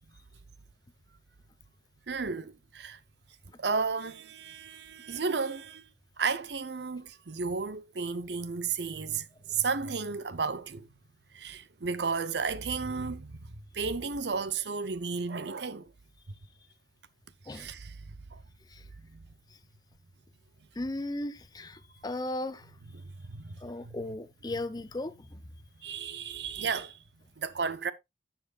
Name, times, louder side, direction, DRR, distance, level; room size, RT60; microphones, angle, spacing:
voice 1, 2.1-3.0 3.6-5.9 6.2-10.9 11.3-15.9 16.3-16.4 17.4-18.4 19.0-19.2 22.9-24.0 25.8-27.0 27.4-27.9, right 5 dB, 70° right, 0.8 m, -33 dB
voice 2, 20.8-22.7 23.6-25.4, left 2 dB, 20° left, 0.6 m, -36 dB
11.5 x 7.6 x 2.5 m
head